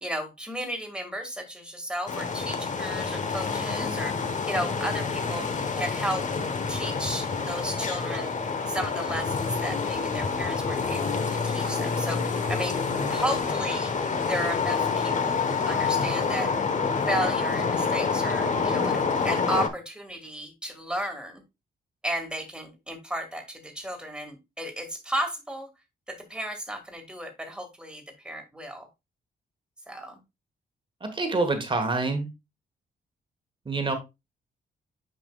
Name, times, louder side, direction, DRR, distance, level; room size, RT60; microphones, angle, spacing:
voice 1, 0.0-5.5 5.8-6.3 6.7-8.3 8.7-12.8 13.1-13.9 14.3-16.5 17.1-19.0 19.2-21.4 22.0-25.7 26.1-28.9 29.9-30.2, equal, 5° right, 1.8 m, -34 dB
sound 1, 2.1-19.7, left 5 dB, 40° left, 1.1 m, -27 dB
voice 2, 31.0-32.3 33.7-33.9, right 3 dB, 25° right, 1.3 m, -26 dB
9.3 x 5.3 x 2.3 m
wide cardioid pair, 130°, 19 cm